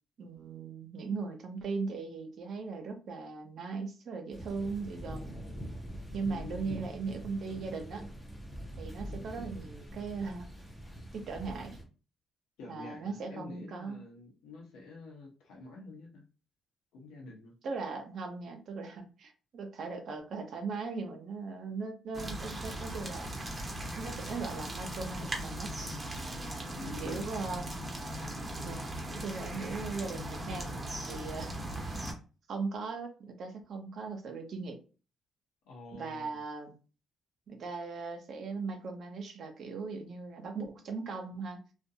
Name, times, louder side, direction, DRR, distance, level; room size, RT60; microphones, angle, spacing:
voice 1, 0.2-5.4 6.1-8.0 8.8-10.5 11.1-11.8 12.7-14.1 17.6-23.3 24.0-25.7 26.8-27.7 28.6-28.8 29.1-31.6 31.8-32.1 32.5-34.8 35.9-36.7 37.5-41.6, right 4 dB, 60° right, 5 dB, 0.6 m, -39 dB
sound 1, 4.3-11.8, equal, 10° left, 0.7 m, -44 dB
voice 2, 6.3-6.9 12.6-16.2 16.9-17.5 26.8-27.6 35.6-36.4, left 3 dB, 90° left, -1 dB, 0.9 m, -48 dB
sound 2, 22.1-32.1, right 1 dB, 25° right, 0.8 m, -39 dB
2.5 x 2.2 x 2.7 m, 0.36 s
cardioid pair, 90°, 0 cm